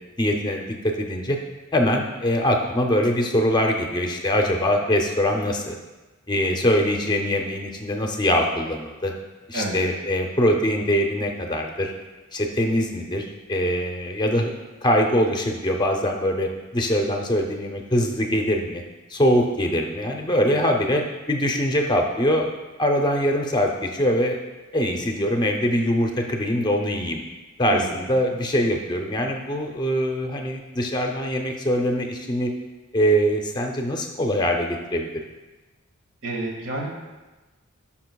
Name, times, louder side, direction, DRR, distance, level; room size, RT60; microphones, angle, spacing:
voice 1, 0.2-1.4 1.7-5.8 6.3-9.1 9.5-11.9 12.3-14.5 14.8-18.8 19.1-24.4 24.7-27.2 27.6-32.5 32.9-35.1, equal, 20° left, 3 dB, 0.5 m, -23 dB
voice 2, 36.2-36.9, right 2 dB, 70° right, -1 dB, 1.7 m, -29 dB
12.5 x 5.8 x 2.3 m, 1.2 s
head